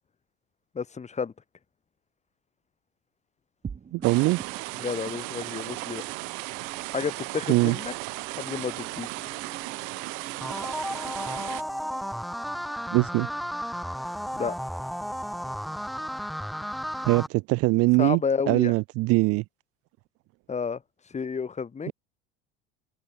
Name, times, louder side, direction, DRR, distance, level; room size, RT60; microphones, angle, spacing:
voice 1, 0.8-1.3 4.8-6.0 6.9-7.9 8.4-9.1 14.3-14.6 18.0-18.7 20.5-20.8 21.1-21.9, left 5 dB, 20° left, 1.8 m, -30 dB
sound 1, 3.6-14.3, right 6 dB, 20° right, 2.0 m, -47 dB
voice 2, 3.9-4.4 7.5-7.8 12.9-13.3 17.0-18.2 18.5-19.4, right 23 dB, 45° right, 0.5 m, -22 dB
sound 2, 4.0-11.6, right 31 dB, 60° right, 3.1 m, -36 dB
sound 3, 10.4-17.3, equal, ahead, 2.8 m, -33 dB
hypercardioid pair, 90°, 34 cm